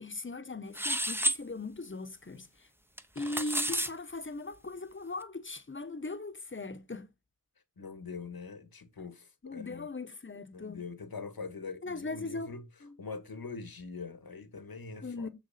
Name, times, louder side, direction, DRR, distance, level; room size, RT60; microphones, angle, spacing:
voice 1, 0.0-2.7 3.1-7.1 9.4-10.8 11.8-12.5 12.8-13.0 15.0-15.3, left 3 dB, 35° left, 1.1 m, -39 dB
sound 1, 0.8-1.4 3.0-3.9, right 1 dB, 5° right, 0.8 m, -30 dB
voice 2, 7.8-9.9 10.5-12.7 13.0-15.3, left 4 dB, 80° left, 1.8 m, -43 dB
7.4 x 6.6 x 4.2 m
wide cardioid pair, 80°, 36 cm